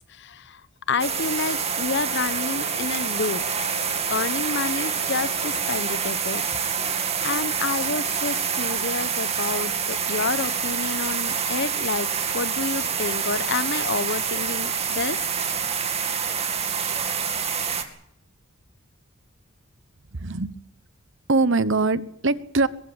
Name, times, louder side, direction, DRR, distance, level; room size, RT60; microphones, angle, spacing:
voice 1, 0.1-0.6 0.9-3.4 4.1-12.1 12.3-15.2, left 4 dB, 55° left, 16 dB, 1.0 m, -29 dB
sound 1, 0.9-6.0, left 3 dB, 70° left, 1.8 m, -41 dB
sound 2, 1.0-17.8, right 7 dB, 30° right, 2.4 m, -27 dB
voice 2, 20.2-20.5 21.3-22.7, right 3 dB, 60° right, 16 dB, 1.1 m, -22 dB
22.5 x 15.5 x 8.9 m, 0.71 s
head